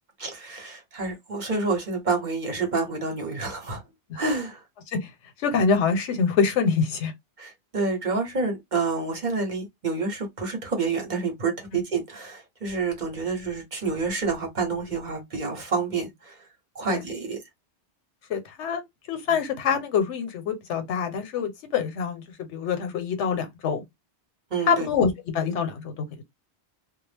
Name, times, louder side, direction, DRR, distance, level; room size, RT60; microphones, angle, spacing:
voice 1, 0.2-3.8 4.1-4.6 7.4-16.4 16.7-17.4 24.5-24.9, right 4 dB, 45° right, 1.0 m, -28 dB
voice 2, 5.4-7.1 11.7-11.8 16.9-17.0 18.3-18.8 19.1-22.2 22.5-23.8 24.7-26.1, left 6 dB, 85° left, 1.0 m, -25 dB
2.3 x 2.0 x 3.2 m
omnidirectional pair, 1.2 m